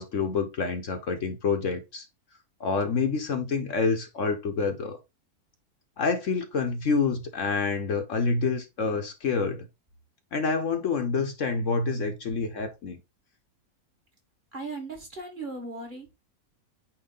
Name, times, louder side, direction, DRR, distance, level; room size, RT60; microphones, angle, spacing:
voice 1, 0.0-2.1 2.6-5.0 6.0-9.6 10.3-13.0, left 4 dB, 60° left, 1.1 m, -27 dB
voice 2, 14.5-16.1, right 3 dB, 30° right, 1.7 m, -37 dB
8.7 x 3.1 x 3.8 m
omnidirectional pair, 1.6 m